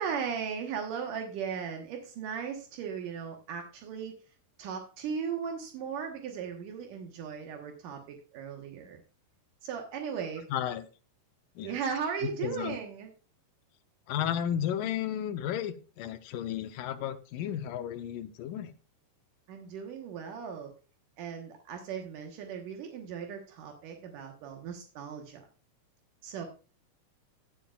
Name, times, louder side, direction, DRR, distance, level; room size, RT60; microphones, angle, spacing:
voice 1, 0.0-4.2 4.6-9.0 9.6-10.5 11.6-13.1 19.5-20.7 21.2-25.5 26.2-26.5, right 7 dB, 75° right, 3 dB, 2.7 m, -37 dB
voice 2, 10.5-10.8 11.6-11.7 12.2-12.8 14.1-18.7, left 10 dB, 80° left, 10 dB, 2.3 m, -33 dB
17.5 x 7.4 x 2.3 m, 0.35 s
omnidirectional pair, 3.8 m